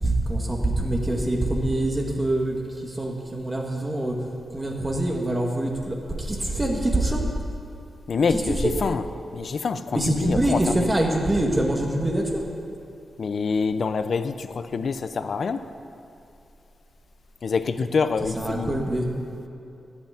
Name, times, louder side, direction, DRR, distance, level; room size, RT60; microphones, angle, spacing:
voice 1, 0.0-7.2 8.3-8.7 9.9-12.4 18.4-19.1, right 1 dB, 15° right, 0 dB, 1.6 m, -25 dB
voice 2, 8.1-9.0 9.3-10.8 13.2-15.7 17.4-18.8, left 5 dB, 55° left, 11 dB, 0.6 m, -26 dB
14.5 x 6.1 x 9.1 m, 2.7 s
wide cardioid pair, 130°, 0 cm